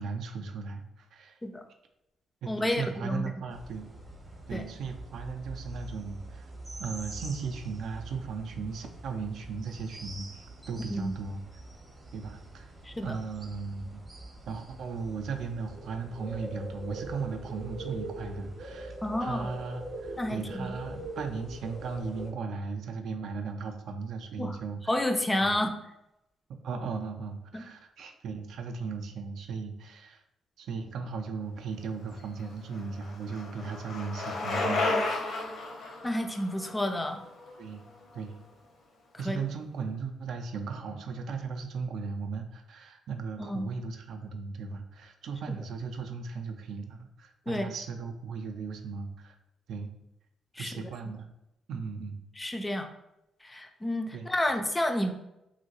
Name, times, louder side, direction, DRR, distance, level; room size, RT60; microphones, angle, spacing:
voice 1, 0.0-1.4 2.4-3.9 4.5-6.5 6.8-11.4 12.1-12.7 13.0-14.0 14.5-18.9 19.2-24.8 25.4-25.5 26.5-30.2 30.6-35.4 37.6-37.8 38.1-38.4 39.2-49.3 49.7-49.9 50.6-51.3 51.7-52.2 54.1-54.3, right 5 dB, 70° right, 5 dB, 0.4 m, -37 dB
voice 2, 2.5-3.2 4.5-4.7 10.9-11.1 12.8-13.2 19.0-19.5 20.2-20.8 24.4-24.6 24.9-25.7 27.5-27.7 36.0-37.2 39.2-39.5 43.4-43.7 45.5-45.6 47.5-47.7 50.6-50.8 52.4-52.9 53.4-55.1, left 1 dB, 15° left, 6 dB, 0.3 m, -30 dB
sound 1, 3.5-22.3, right 2 dB, 30° right, 0.7 m, -43 dB
Bicycle, 32.2-38.2, left 2 dB, 65° left, 0.7 m, -33 dB
2.9 x 2.7 x 2.8 m, 0.86 s
cardioid pair, 90°, 0 cm